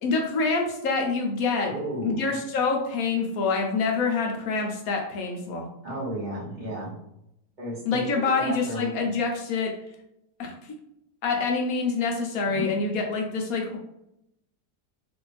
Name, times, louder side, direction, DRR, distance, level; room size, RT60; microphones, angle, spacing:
voice 1, 0.0-1.7 2.0-5.6 7.9-9.7 10.4-10.5 11.2-13.8, left 4 dB, 65° left, 2 dB, 1.0 m, -26 dB
voice 2, 1.7-2.2 5.8-7.0 7.6-8.9 12.5-12.6, right 1 dB, 30° right, -10 dB, 1.0 m, -33 dB
3.2 x 2.6 x 3.0 m, 0.80 s
omnidirectional pair, 1.8 m